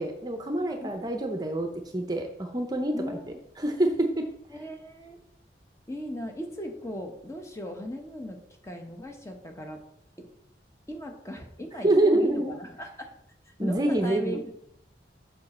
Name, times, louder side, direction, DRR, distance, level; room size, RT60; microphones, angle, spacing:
voice 1, 0.0-1.7 1.9-3.2 3.6-4.2 11.8-12.5 13.6-14.4, right 1 dB, 20° right, 5 dB, 0.7 m, -26 dB
voice 2, 2.9-3.4 4.5-5.2 5.9-8.4 8.6-9.8 10.2-10.3 10.9-13.1 13.5-14.5, equal, 15° left, 3 dB, 1.0 m, -38 dB
7.5 x 5.8 x 4.3 m, 0.77 s
head